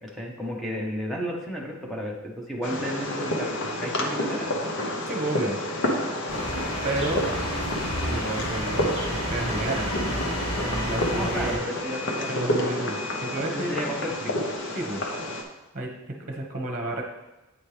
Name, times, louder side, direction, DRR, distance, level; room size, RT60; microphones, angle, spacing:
voice 1, 0.0-3.5 3.8-4.5 11.1-12.7 13.5-14.4, equal, ahead, -3 dB, 0.9 m, -33 dB
Fireworks, 2.6-15.4, left 1 dB, 60° left, 0.8 m, -30 dB
voice 2, 5.0-5.6 6.8-7.2 8.1-10.0 10.8-11.8 12.3-13.7 14.7-15.0 15.7-15.9 16.2-17.0, right 2 dB, 40° right, 1 dB, 1.1 m, -31 dB
sound 1, 6.3-11.6, equal, 80° left, 1.8 m, -31 dB
8.6 x 4.3 x 3.3 m, 1.0 s
head